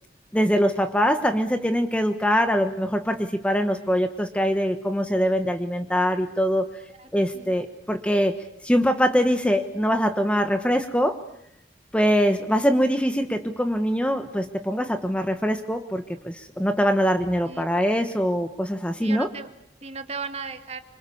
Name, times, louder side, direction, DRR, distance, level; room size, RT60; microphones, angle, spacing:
voice 1, 0.3-6.7 7.1-8.4 8.6-11.2 11.9-19.3, equal, 5° left, 7 dB, 1.2 m, -23 dB
voice 2, 19.0-19.5 19.8-20.8, right 4 dB, 35° right, 8 dB, 2.0 m, -35 dB
26.5 x 25.5 x 7.2 m, 0.73 s
head